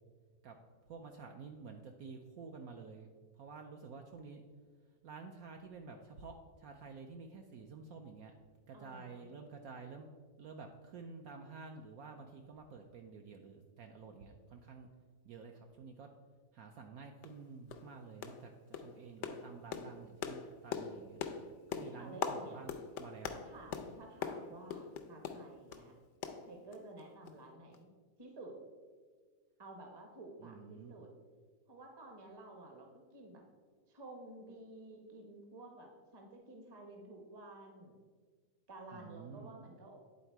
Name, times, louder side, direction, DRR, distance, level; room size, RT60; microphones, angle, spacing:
voice 1, 0.8-3.1 3.3-4.4 5.0-8.3 8.7-10.1 10.4-14.9 15.2-16.1 16.5-21.2 21.7-23.4 30.4-31.0 38.9-39.5, right 4 dB, 70° right, 4 dB, 0.9 m, -50 dB
voice 2, 8.7-9.3 22.0-22.6 23.3-26.0 26.5-27.9 28.2-28.6 29.6-31.1 31.7-33.4 33.9-38.0 38.7-40.0, right 2 dB, 25° right, 3 dB, 0.6 m, -52 dB
sound 1, 16.7-16.8 17.2-17.4 17.7-17.9 18.2-18.5 18.7-25.9 26.2-27.0 27.3-27.4 27.7-27.8, left 7 dB, 75° left, 0.6 m, -42 dB
9.8 x 3.9 x 4.5 m, 1.5 s
omnidirectional pair, 1.8 m